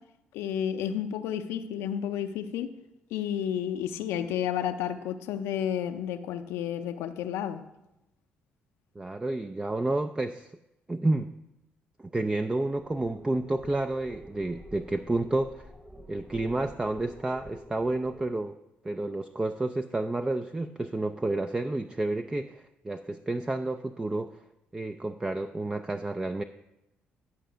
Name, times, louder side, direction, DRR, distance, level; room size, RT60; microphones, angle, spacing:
voice 1, 0.3-2.7 3.1-7.6, left 9 dB, 85° left, 8 dB, 0.6 m, -31 dB
voice 2, 9.0-10.5 10.9-11.3 12.0-15.7 16.1-18.6 18.8-24.4 24.7-26.4, right 2 dB, 20° right, 8 dB, 0.5 m, -30 dB
sound 1, 12.7-18.3, equal, ahead, 1.2 m, -48 dB
11.5 x 5.6 x 5.1 m, 0.90 s
supercardioid pair, 65°, 4 cm